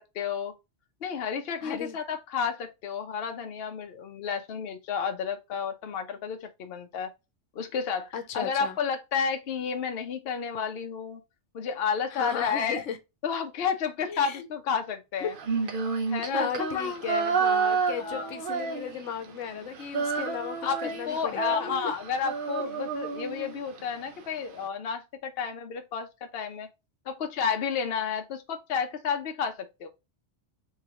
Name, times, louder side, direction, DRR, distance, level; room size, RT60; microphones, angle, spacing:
voice 1, 0.2-0.5 1.0-7.1 7.5-11.2 11.5-12.8 13.2-15.3 16.0-16.5 16.7-17.0 18.0-18.3 20.6-26.7 27.1-29.9, left 6 dB, 60° left, 0.9 m, -31 dB
voice 2, 1.6-2.0 8.1-8.8 12.1-13.0 14.1-14.5 15.2-15.3 16.3-21.9, left 8 dB, 90° left, 1.0 m, -35 dB
Female singing, 15.3-19.3 19.5-23.8, right 5 dB, 55° right, 0.7 m, -30 dB
3.7 x 3.3 x 2.8 m
omnidirectional pair, 1.2 m